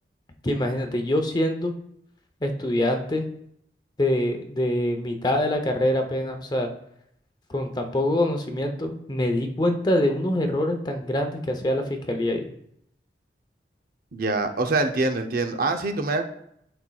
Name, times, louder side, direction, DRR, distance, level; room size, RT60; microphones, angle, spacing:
voice 1, 0.4-1.7 2.4-3.3 4.0-6.7 7.5-12.5, left 1 dB, 25° left, 5 dB, 0.7 m, -25 dB
voice 2, 14.1-16.2, right 3 dB, 55° right, 6 dB, 0.6 m, -24 dB
12.0 x 4.3 x 2.3 m, 0.75 s
head